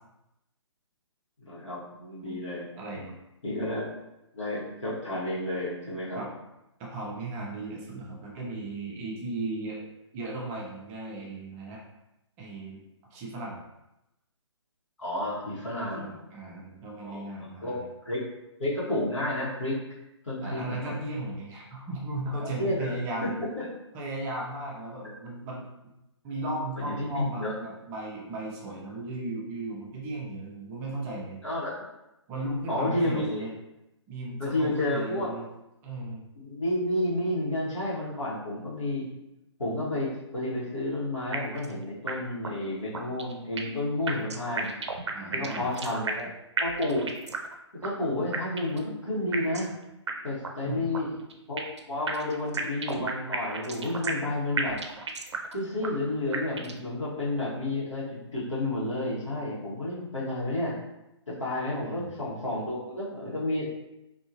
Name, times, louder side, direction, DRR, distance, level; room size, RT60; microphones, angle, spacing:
voice 1, 1.4-2.7 3.4-3.9 4.3-6.2 15.0-16.1 17.0-17.8 18.0-18.2 18.6-19.8 20.2-20.9 22.4-22.9 23.2-23.7 25.0-25.1 26.8-27.5 31.4-31.9 32.7-33.4 34.4-35.3 36.4-39.1 39.6-44.7 45.3-46.3 46.6-47.1 47.7-49.7 50.2-51.1 51.5-54.8 55.5-60.7 61.3-63.7, left 1 dB, 85° left, -8 dB, 1.4 m, -31 dB
voice 2, 2.8-3.2 6.2-6.3 6.8-9.8 10.1-11.8 12.4-12.8 13.1-13.6 15.9-17.9 20.4-23.4 23.9-25.7 26.2-31.4 32.3-33.5 34.1-35.5 35.8-36.2 45.1-45.7 50.6-50.9 61.8-62.1, right 2 dB, 15° right, -3 dB, 0.4 m, -36 dB
sound 1, 41.3-41.7 42.1-42.2 42.4-42.5 42.9-43.8 44.1-46.3 46.6-47.5 47.8-47.9 48.3-48.8 49.3-49.7 50.1-50.2 50.4-50.5 50.9-51.8 52.1-54.3 54.6-55.5 55.8-55.9 56.3-56.8, right 4 dB, 65° right, 0.5 m, -33 dB
2.7 x 2.6 x 2.8 m, 0.91 s
figure-of-eight pair, 140°, 15 cm